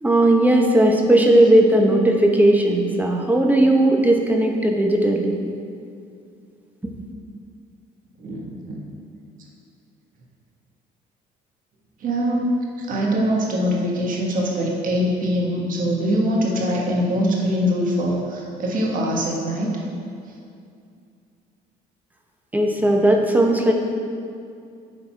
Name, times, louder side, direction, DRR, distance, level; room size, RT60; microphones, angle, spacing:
voice 1, 0.0-5.4 22.5-23.7, right 1 dB, 10° right, 1 dB, 0.9 m, -17 dB
voice 2, 8.2-8.9 12.0-12.5 12.8-19.8, equal, 55° right, -2 dB, 1.5 m, -23 dB
10.5 x 4.0 x 4.5 m, 2.4 s
cardioid pair, 110°, 17 cm